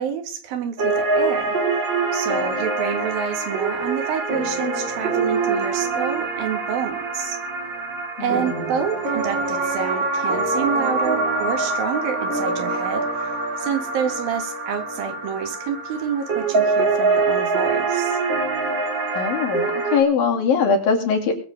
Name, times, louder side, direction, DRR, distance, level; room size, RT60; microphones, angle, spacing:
voice 1, 0.0-1.6 2.1-7.4 8.2-13.3 13.6-18.2, right 7 dB, 85° right, 6 dB, 3.5 m, -28 dB
sound 1, 0.8-20.0, right 3 dB, 35° right, 2.6 m, -24 dB
voice 2, 8.2-8.7 19.1-21.3, left 5 dB, 80° left, 1 dB, 4.5 m, -21 dB
21.0 x 7.7 x 5.2 m, 0.42 s
omnidirectional pair, 4.1 m